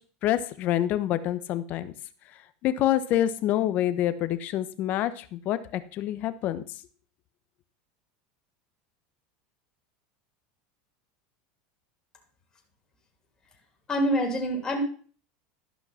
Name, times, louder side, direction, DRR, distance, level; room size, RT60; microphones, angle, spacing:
voice 1, 0.2-1.9 2.6-6.6, left 12 dB, 50° left, 12 dB, 1.0 m, -27 dB
voice 2, 13.9-14.8, equal, 20° left, 1 dB, 2.8 m, -26 dB
12.5 x 5.6 x 5.7 m, 0.43 s
supercardioid pair, 130°, 4 cm